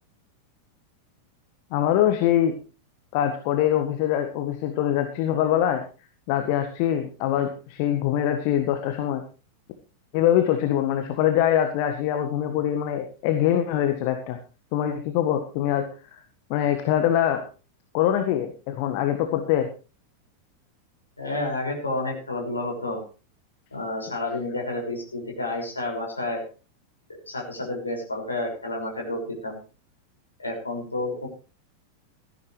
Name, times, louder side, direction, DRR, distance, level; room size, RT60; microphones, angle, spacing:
voice 1, 1.7-2.5 3.1-5.8 6.3-9.2 10.1-14.4 14.7-15.8 16.5-17.4 17.9-19.7, left 11 dB, 45° left, 7 dB, 1.6 m, -23 dB
voice 2, 21.2-23.0 23.7-26.4 27.1-29.6 30.4-31.3, left 2 dB, 80° left, 0 dB, 5.9 m, -30 dB
17.5 x 14.0 x 3.3 m, 0.35 s
figure-of-eight pair, 90°, 0 cm